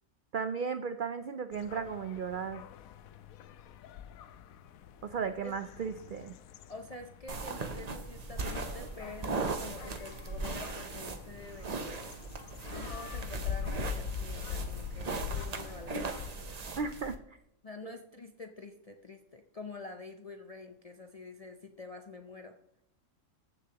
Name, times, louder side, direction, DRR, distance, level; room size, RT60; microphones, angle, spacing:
voice 1, 0.3-2.6 5.0-6.3 16.8-17.4 17.8-17.9, right 6 dB, 70° right, 10 dB, 0.4 m, -35 dB
sound 1, 1.5-16.3, left 7 dB, 80° left, 1.1 m, -43 dB
voice 2, 6.7-12.2 12.7-16.8 17.6-22.5, left 3 dB, 45° left, 5 dB, 0.4 m, -47 dB
sound 2, 7.3-17.2, right 3 dB, 40° right, 0.7 m, -39 dB
14.5 x 6.8 x 2.9 m, 0.76 s
omnidirectional pair, 1.5 m